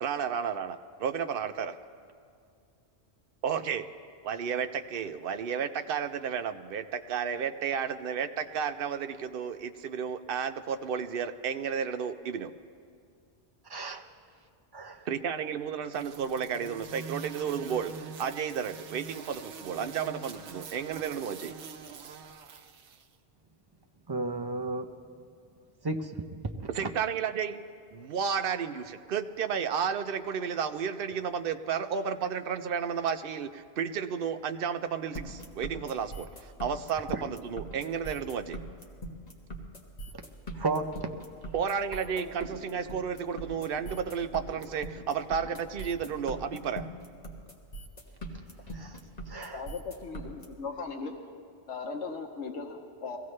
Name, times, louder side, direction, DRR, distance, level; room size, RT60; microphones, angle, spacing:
voice 1, 0.0-1.7 3.4-3.9 4.2-12.5 15.1-21.6 26.7-27.6 27.9-38.6 41.5-46.9, right 7 dB, 60° right, 9 dB, 0.8 m, -32 dB
voice 2, 13.7-14.0 14.7-15.1 24.1-24.9 25.8-26.9 37.1-37.2 40.5-41.1 48.7-49.0 49.3-49.6, right 3 dB, 25° right, 3 dB, 0.6 m, -33 dB
sound 1, 15.9-23.1, right 6 dB, 85° right, 1.0 m, -44 dB
sound 2, 35.1-50.4, right 1 dB, 35° left, 1.5 m, -41 dB
voice 3, 49.5-51.1 51.7-53.2, left 4 dB, 85° left, 3 dB, 1.3 m, -38 dB
22.0 x 16.0 x 3.2 m, 2.3 s
omnidirectional pair, 1.1 m